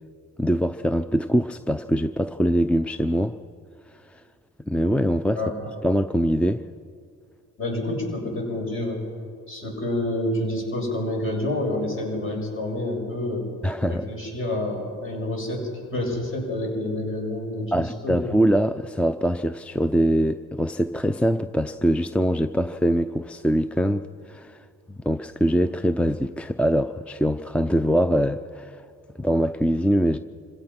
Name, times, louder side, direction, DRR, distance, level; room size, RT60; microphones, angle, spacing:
voice 1, 0.4-3.4 4.1-4.2 4.7-5.4 5.8-6.6 13.6-14.0 17.7-28.8 29.2-30.2, equal, 5° left, 11 dB, 0.5 m, -23 dB
voice 2, 7.6-9.0 9.5-13.5 13.9-18.2, left 1 dB, 45° left, -1 dB, 7.5 m, -28 dB
26.0 x 16.5 x 5.9 m, 2.3 s
cardioid pair, 90°, 30 cm